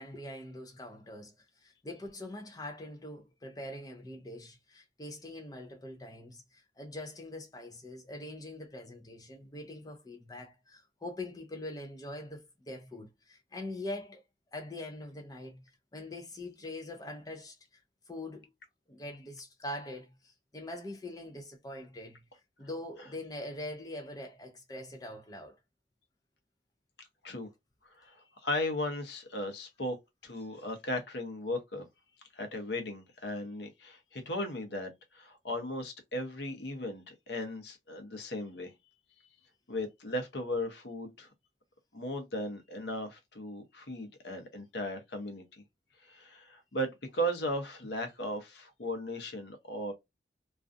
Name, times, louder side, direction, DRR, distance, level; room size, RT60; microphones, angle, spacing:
voice 1, 0.0-14.2 14.5-15.6 15.9-17.8 18.1-18.5 18.9-22.2 22.6-25.6, left 1 dB, 20° left, 0.4 m, -43 dB
voice 2, 28.0-30.0 30.2-31.9 32.3-38.7 39.2-39.3 39.7-41.3 41.9-45.4 46.0-49.9, left 1 dB, 70° left, 0.8 m, -36 dB
2.4 x 2.2 x 2.5 m
head